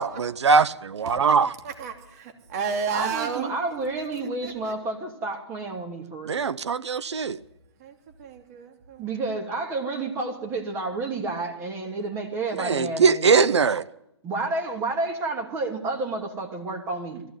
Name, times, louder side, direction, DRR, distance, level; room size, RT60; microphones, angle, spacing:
voice 1, 0.0-1.5 6.3-7.4 12.6-13.8, right 5 dB, 70° right, 0.8 m, -21 dB
voice 2, 1.6-3.5 4.4-4.7 7.8-9.1, right 5 dB, 35° right, 2.8 m, -32 dB
voice 3, 2.9-6.4 9.0-13.4 14.2-17.2, right 3 dB, 15° right, 2.7 m, -30 dB
20.5 x 15.5 x 9.6 m
hypercardioid pair, 155°, 15 cm